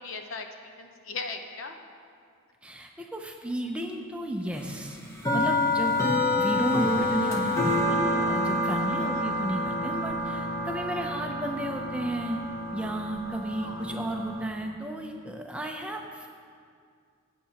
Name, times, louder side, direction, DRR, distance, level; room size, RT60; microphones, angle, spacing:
voice 1, 0.0-1.8 9.0-9.1 13.6-13.9, left 4 dB, 65° left, 5 dB, 0.8 m, -38 dB
voice 2, 2.6-5.0 5.3-12.4 12.7-16.3, right 1 dB, 5° right, 2 dB, 0.5 m, -33 dB
sound 1, 4.7-14.5, left 1 dB, 15° left, 0.9 m, -28 dB
16.0 x 8.4 x 2.9 m, 2.2 s
head